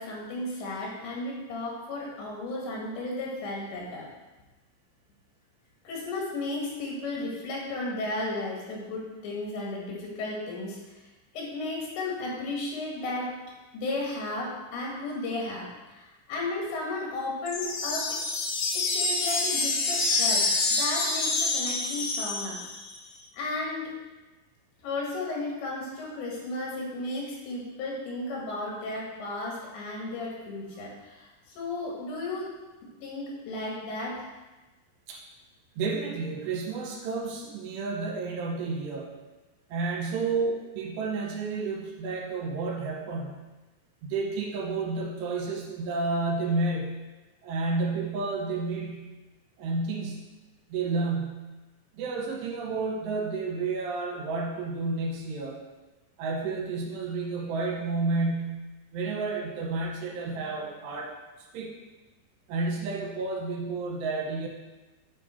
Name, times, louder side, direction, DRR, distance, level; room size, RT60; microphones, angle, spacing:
voice 1, 0.0-4.1 5.9-10.8 11.3-13.3 13.7-18.2 18.8-20.5 20.8-22.6 23.3-23.9 24.8-31.3 31.6-32.5 33.0-34.3, left 2 dB, 80° left, -3 dB, 4.1 m, -34 dB
sound 1, 17.5-22.9, left 3 dB, 60° left, 2.6 m, -27 dB
voice 2, 35.8-39.1 39.7-43.4 44.0-46.9 47.4-49.1 49.6-50.3 50.7-51.5 51.9-55.6 56.2-58.6 58.9-61.1 61.5-61.7 62.5-64.5, right 3 dB, 80° right, 0 dB, 3.1 m, -31 dB
8.9 x 5.2 x 4.4 m, 1.1 s
omnidirectional pair, 5.1 m